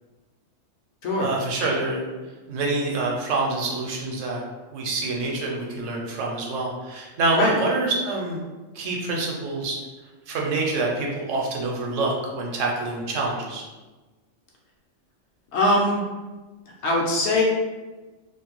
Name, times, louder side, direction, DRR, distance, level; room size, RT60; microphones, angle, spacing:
voice 1, 1.2-2.0 2.5-4.4 4.7-8.4 8.7-9.8 10.3-13.6, right 3 dB, 75° right, -1 dB, 0.9 m, -26 dB
voice 2, 15.5-16.0 16.8-17.4, left 1 dB, 65° left, -2 dB, 0.7 m, -21 dB
2.5 x 2.1 x 2.9 m, 1.2 s
omnidirectional pair, 1.3 m